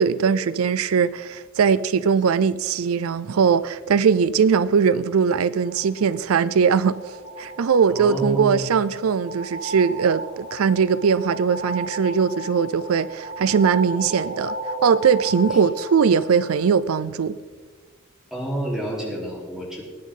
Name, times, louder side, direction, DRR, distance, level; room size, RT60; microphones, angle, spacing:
voice 1, 0.0-7.0 7.4-14.5 14.8-17.4, right 6 dB, 85° right, 0.4 m, -20 dB
sound 1, 5.3-16.9, right 1 dB, 40° right, 3.6 m, -35 dB
voice 2, 7.9-8.7 14.1-14.2 15.5-15.6 18.3-19.8, right 1 dB, 5° right, 3.8 m, -29 dB
21.0 x 10.0 x 3.8 m
head